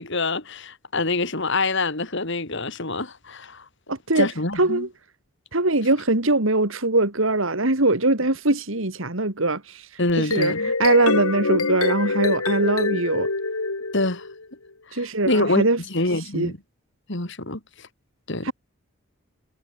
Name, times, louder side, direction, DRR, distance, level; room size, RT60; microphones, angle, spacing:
voice 1, 0.0-3.6 4.2-4.9 10.0-10.7 13.9-14.2 14.9-16.6 17.1-17.6 18.3-18.5, left 2 dB, 55° left, 2.9 m, -25 dB
voice 2, 3.9-4.3 4.6-4.9 5.5-9.8 10.3-13.3 14.9-15.8 16.3-16.5 18.4-18.5, right 2 dB, 65° right, 2.6 m, -22 dB
sound 1, 10.1-14.4, left 3 dB, 85° left, 2.5 m, -25 dB
head